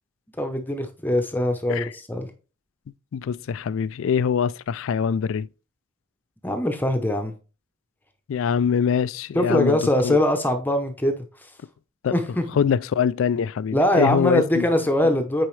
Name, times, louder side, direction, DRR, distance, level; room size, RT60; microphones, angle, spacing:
voice 1, 0.4-2.3 6.4-7.3 9.3-11.2 12.1-12.4 13.7-15.5, left 1 dB, 10° left, 0.7 m, -22 dB
voice 2, 3.1-5.5 8.3-10.2 12.0-12.1 12.6-14.7, left 7 dB, 65° left, 0.3 m, -24 dB
9.0 x 4.7 x 3.2 m
head